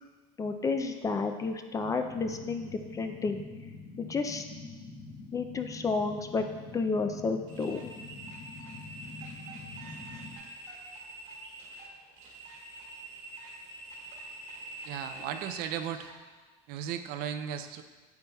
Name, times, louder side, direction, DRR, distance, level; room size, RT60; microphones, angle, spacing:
voice 1, 0.4-3.4 4.0-4.4 5.3-6.4 6.7-7.9, left 4 dB, 20° left, 6 dB, 0.3 m, -31 dB
sound 1, 1.8-10.4, left 3 dB, 50° left, 0.9 m, -45 dB
sound 2, 7.5-16.2, right 2 dB, 80° right, 2.1 m, -46 dB
voice 2, 14.8-16.1 16.7-17.8, right 9 dB, 60° right, 8 dB, 0.5 m, -36 dB
9.3 x 7.3 x 2.3 m, 1.3 s
cardioid pair, 150°, 17 cm